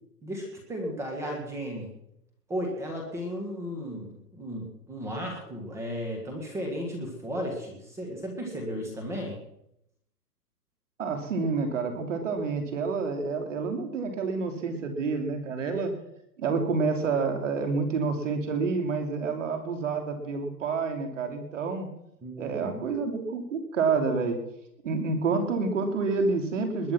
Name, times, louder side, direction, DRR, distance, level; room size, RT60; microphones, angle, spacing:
voice 1, 0.2-1.9 2.5-9.4 22.2-22.8, equal, 5° right, 0 dB, 1.6 m, -35 dB
voice 2, 11.0-15.9 16.4-21.9 22.4-24.4 24.8-26.9, right 4 dB, 45° right, 5 dB, 2.9 m, -28 dB
20.5 x 10.0 x 5.9 m, 0.77 s
hypercardioid pair, 160°, 50 cm